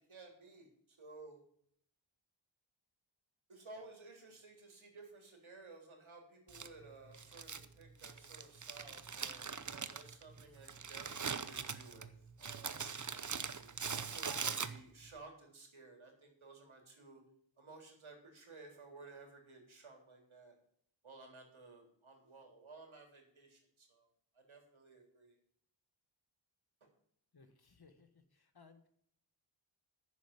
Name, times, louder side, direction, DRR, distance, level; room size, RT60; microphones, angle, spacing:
voice 1, 0.0-1.4 3.5-12.1 12.4-17.2 17.6-20.6 21.0-24.1 24.3-25.4 26.8-26.9, right 3 dB, 75° right, 2 dB, 3.6 m, -56 dB
Crumpling crinkling, 6.5-15.1, right 6 dB, 40° right, 0.8 m, -42 dB
voice 2, 27.3-28.9, left 4 dB, 50° left, 8 dB, 1.6 m, -63 dB
10.0 x 7.2 x 7.6 m, 0.65 s
wide cardioid pair, 95°, 48 cm